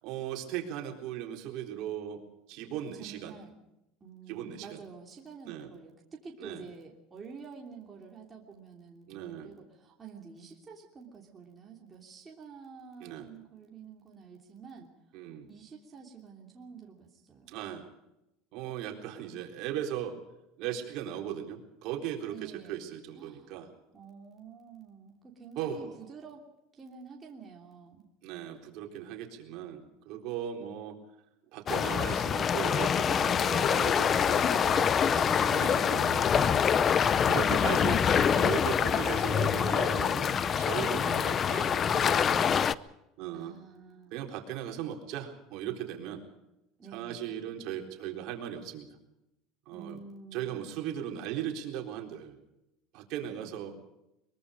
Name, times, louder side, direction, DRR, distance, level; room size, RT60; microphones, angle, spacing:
voice 1, 0.0-2.2 2.5-3.3 4.3-4.8 5.5-5.7 6.4-6.7 9.1-9.5 13.0-13.3 15.1-15.5 17.5-17.9 18.5-20.2 20.6-23.7 25.6-25.9 28.2-31.0 31.5-36.8 37.2-42.6 43.2-43.5 44.1-46.2 46.9-49.0 49.7-50.0 50.3-52.4 52.9-53.7, right 10 dB, 60° right, 2 dB, 4.0 m, -38 dB
voice 2, 3.0-3.5 4.0-14.9 15.5-17.8 22.3-22.8 23.1-23.5 23.9-26.4 26.7-28.1 34.9-35.4 36.4-37.6 37.8-38.7 43.3-44.1 46.8-47.4 49.7-50.8 53.2-53.7, right 5 dB, 20° right, -1 dB, 3.1 m, -49 dB
sound 1, 31.7-42.8, left 7 dB, 30° left, 0.6 m, -25 dB
23.0 x 22.0 x 5.1 m, 0.91 s
cardioid pair, 150°, 0 cm